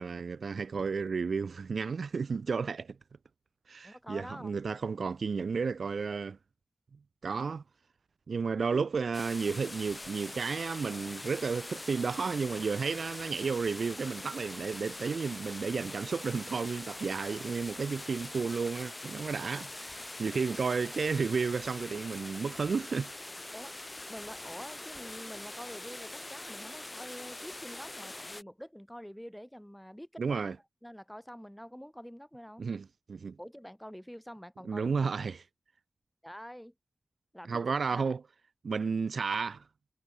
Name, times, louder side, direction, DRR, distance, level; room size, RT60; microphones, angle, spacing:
voice 1, 0.0-3.0 3.7-6.4 7.2-7.6 8.3-23.1 30.2-30.6 32.6-33.4 34.6-35.4 37.5-38.2 38.6-39.6, right 5 dB, 85° right, 0.5 m, -32 dB
voice 2, 3.8-4.5 23.5-23.7 24.1-30.6 30.8-32.6 33.4-34.9 35.2-35.3 36.2-36.7 37.3-37.6 37.9-38.2, equal, 5° left, 4.4 m, -46 dB
sound 1, 9.1-28.4, left 2 dB, 30° left, 3.3 m, -43 dB
cardioid pair, 55°, 0 cm